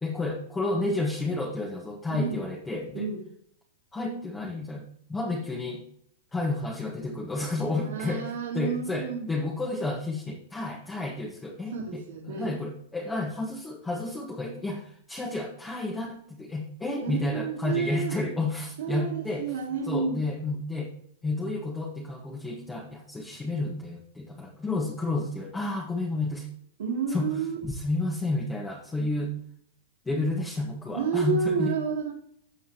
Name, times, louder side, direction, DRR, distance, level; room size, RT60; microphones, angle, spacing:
voice 1, 0.0-3.1 3.9-5.8 6.3-19.5 19.9-20.9 21.2-26.5 27.1-27.3 27.6-29.3 30.0-31.7, left 2 dB, 15° left, -1 dB, 1.6 m, -31 dB
voice 2, 7.8-9.3 11.7-12.5 17.0-18.2 18.8-20.2 26.8-27.6 30.9-32.1, right 6 dB, 75° right, -4 dB, 2.8 m, -30 dB
16.0 x 5.5 x 3.0 m, 0.67 s
hypercardioid pair, 125°, 0 cm